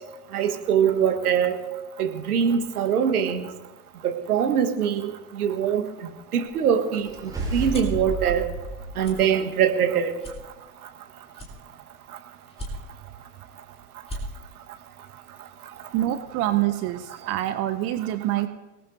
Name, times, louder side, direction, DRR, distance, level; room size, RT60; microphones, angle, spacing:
voice 1, 0.3-1.6 2.0-3.5 4.0-5.9 6.3-8.5 9.0-10.1, right 8 dB, 65° right, 5 dB, 1.7 m, -23 dB
sound 1, 6.4-8.0 8.5-8.7 9.0-9.2 9.7-9.8 10.2-11.0 11.3-12.0 12.5-13.1 13.6-13.7 13.9-14.2, equal, 10° left, 3.5 m, -39 dB
sound 2, 7.0-9.8, right 3 dB, 5° right, 7.5 m, -32 dB
voice 2, 15.9-18.5, right 13 dB, 30° right, 11 dB, 0.7 m, -26 dB
26.5 x 18.5 x 2.8 m, 1.1 s
figure-of-eight pair, 90°, 48 cm